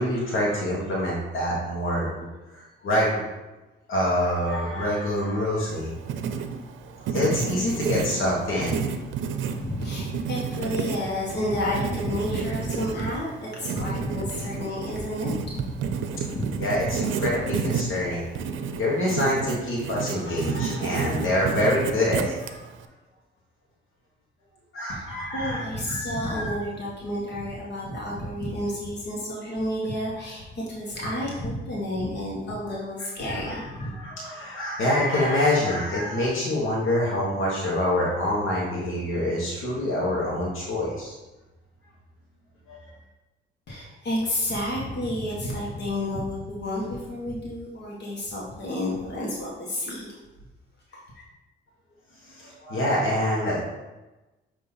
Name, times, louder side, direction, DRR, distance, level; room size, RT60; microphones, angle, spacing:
voice 1, 0.0-3.2 3.9-5.9 7.1-8.8 16.6-18.3 18.8-22.6 24.7-26.5 33.2-33.6 33.9-41.1 42.7-42.8 52.3-53.6, left 1 dB, 80° left, -5 dB, 1.4 m, -26 dB
Writing, 5.7-22.8, right 6 dB, 75° right, 0.5 m, -31 dB
voice 2, 9.6-16.5 17.2-17.3 17.7-17.8 24.9-33.9 43.7-50.1 51.1-51.2, left 1 dB, 60° left, -5 dB, 1.6 m, -30 dB
8.6 x 3.0 x 4.1 m, 1.1 s
cardioid pair, 90°, 20 cm